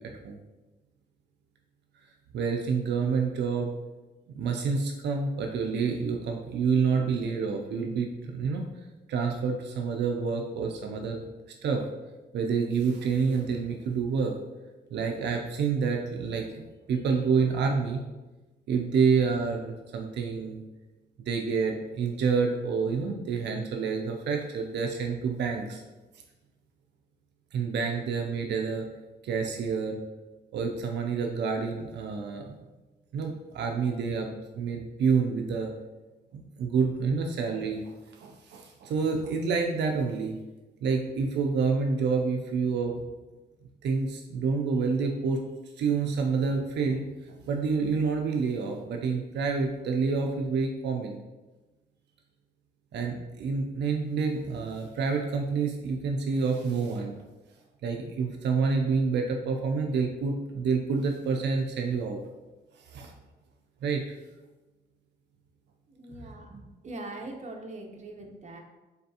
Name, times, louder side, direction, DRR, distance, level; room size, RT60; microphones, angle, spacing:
voice 1, 2.3-3.7 4.4-8.6 9.1-11.2 11.6-11.8 12.3-14.3 14.9-18.0 18.7-20.6 21.2-25.8 27.5-28.9 29.2-29.9 30.5-32.5 33.1-35.7 36.3-37.9 38.2-40.4 40.8-43.0 43.8-45.4 45.8-51.2 52.9-57.1 57.8-62.2 62.8-63.1 63.8-64.0, right 5 dB, 85° right, 2 dB, 0.4 m, -28 dB
voice 2, 65.9-68.6, right 2 dB, 40° right, 2 dB, 0.7 m, -42 dB
3.9 x 3.3 x 2.7 m, 1.1 s
cardioid pair, 75°, 17 cm